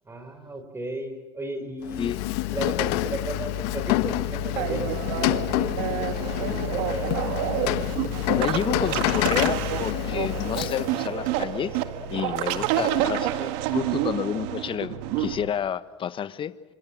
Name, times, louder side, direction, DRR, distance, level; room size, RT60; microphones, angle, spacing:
voice 1, 0.1-2.2 2.5-7.2 12.6-12.9, right 2 dB, 15° right, 7 dB, 5.1 m, -35 dB
Rain, 1.8-11.1, left 18 dB, 65° left, 1.2 m, -27 dB
sound 1, 3.2-15.5, right 6 dB, 85° right, 5.6 m, -41 dB
sound 2, 4.6-15.3, right 12 dB, 65° right, 1.9 m, -29 dB
voice 2, 8.4-11.8 12.1-16.5, left 9 dB, 35° left, 14 dB, 1.3 m, -30 dB
27.5 x 26.5 x 7.7 m, 1.2 s
hypercardioid pair, 85°, 15 cm